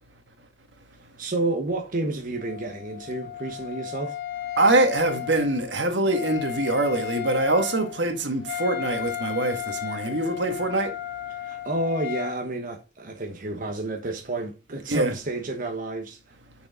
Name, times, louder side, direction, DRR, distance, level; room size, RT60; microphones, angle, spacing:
voice 1, 1.2-4.2 11.4-16.2, right 2 dB, 50° right, 1.2 m, -30 dB
Wind instrument woodwind instrument, 2.4-12.4, left 12 dB, 65° left, 1.2 m, -34 dB
voice 2, 4.6-11.0 14.9-15.2, right 2 dB, 75° right, 1.8 m, -24 dB
6.6 x 6.6 x 3.7 m
head